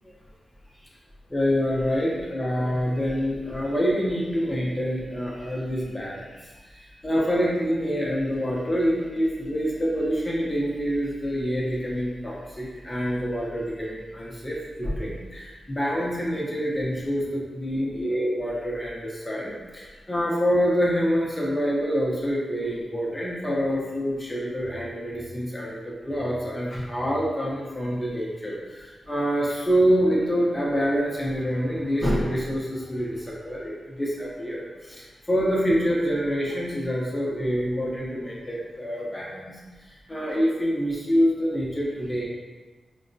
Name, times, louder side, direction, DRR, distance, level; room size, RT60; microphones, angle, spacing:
voice 1, 1.3-42.3, equal, 15° left, -5 dB, 0.5 m, -26 dB
5.1 x 2.0 x 2.5 m, 1.3 s
wide cardioid pair, 140°, 0 cm